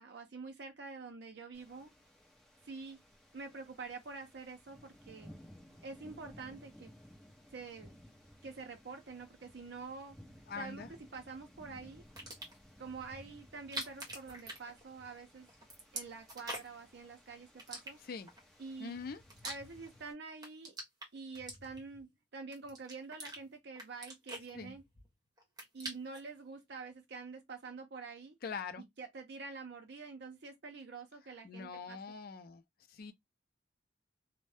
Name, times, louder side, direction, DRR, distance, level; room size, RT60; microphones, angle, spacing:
voice 1, 0.0-1.9 2.6-3.0 3.3-5.3 5.8-6.9 7.5-7.9 8.4-10.2 10.6-12.0 12.8-15.5 15.9-18.0 18.6-19.0 19.4-20.7 21.1-24.8 25.7-28.3 28.8-32.0, right 4 dB, 65° right, 0.5 m, -47 dB
sound 1, 1.5-20.1, equal, 5° left, 0.9 m, -58 dB
voice 2, 10.5-10.9 18.0-18.3 18.8-19.2 24.5-24.7 28.4-28.8 31.4-32.6 32.9-33.1, left 5 dB, 55° left, 0.4 m, -43 dB
sound 2, 12.1-12.7 13.5-15.2 15.5-16.9 17.6-18.4 18.9-20.0 20.3-22.0 22.5-23.4 23.7-25.1 25.4-26.3, right 1 dB, 20° right, 1.1 m, -45 dB
2.6 x 2.1 x 3.3 m
head